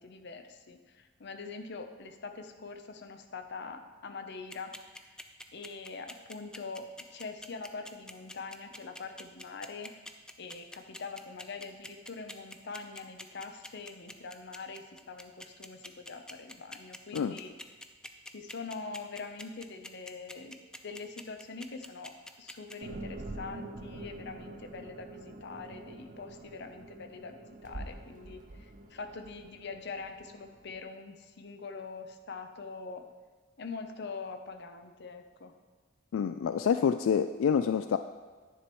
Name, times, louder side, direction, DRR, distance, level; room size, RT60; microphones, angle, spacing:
voice 1, 0.0-5.1 5.5-9.9 10.4-17.5 18.3-33.0 33.6-35.5, left 4 dB, 60° left, 6 dB, 0.7 m, -44 dB
sound 1, 4.5-22.7, left 1 dB, 5° left, 0.4 m, -45 dB
sound 2, 22.8-30.8, right 2 dB, 40° right, 0.7 m, -46 dB
voice 2, 36.1-38.0, left 7 dB, 85° left, 10 dB, 0.3 m, -27 dB
10.0 x 10.0 x 3.1 m, 1.4 s
head